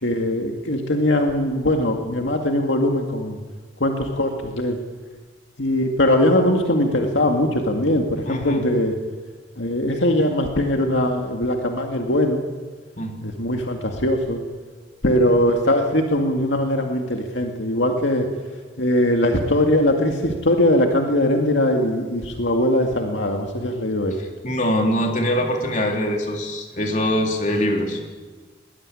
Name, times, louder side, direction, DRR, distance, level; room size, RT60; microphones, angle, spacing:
voice 1, 0.0-3.4 3.8-4.8 5.6-9.0 9.6-12.4 13.2-14.4 15.0-18.3 18.8-24.2, left 1 dB, 70° left, 3 dB, 2.2 m, -21 dB
voice 2, 8.2-8.6 13.0-13.1 24.2-28.0, equal, 40° left, 2 dB, 3.6 m, -23 dB
20.5 x 20.0 x 9.9 m, 1.4 s
head